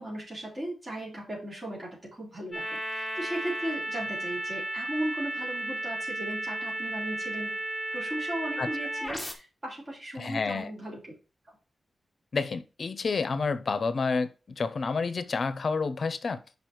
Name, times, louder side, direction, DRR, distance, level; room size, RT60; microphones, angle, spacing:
voice 1, 0.0-7.6 7.9-11.1, right 1 dB, 30° right, 4.0 m, -37 dB
sound 1, 2.5-9.3, right 1 dB, 5° left, 1.2 m, -34 dB
voice 2, 10.2-10.7 12.3-16.4, left 4 dB, 45° left, 0.7 m, -29 dB
6.0 x 5.4 x 4.6 m
wide cardioid pair, 175°, 0 cm